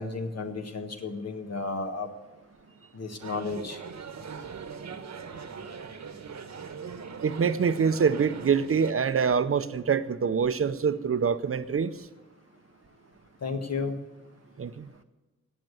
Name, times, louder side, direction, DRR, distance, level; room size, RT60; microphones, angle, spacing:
voice 1, 0.0-2.1 2.9-3.8 13.4-14.0, left 4 dB, 60° left, 1.5 m, -33 dB
sound 1, 3.2-8.9, right 6 dB, 70° right, 1.2 m, -41 dB
voice 2, 7.2-12.1 14.6-14.9, right 6 dB, 50° right, 0.6 m, -25 dB
16.5 x 6.7 x 9.3 m
wide cardioid pair, 170°, 29 cm